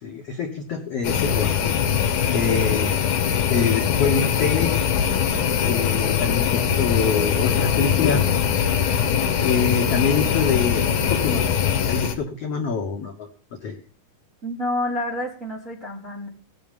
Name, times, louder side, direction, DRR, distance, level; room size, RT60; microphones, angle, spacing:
voice 1, 0.0-2.9 3.5-4.7 5.6-8.2 9.2-10.8 11.1-11.5 11.9-13.3 13.6-13.8, left 5 dB, 85° left, 2 dB, 1.3 m, -26 dB
sound 1, 1.0-12.2, left 8 dB, 65° left, 2.3 m, -22 dB
voice 2, 14.4-16.3, left 1 dB, 30° right, -5 dB, 1.5 m, -28 dB
18.0 x 7.0 x 5.3 m, 0.40 s
omnidirectional pair, 4.6 m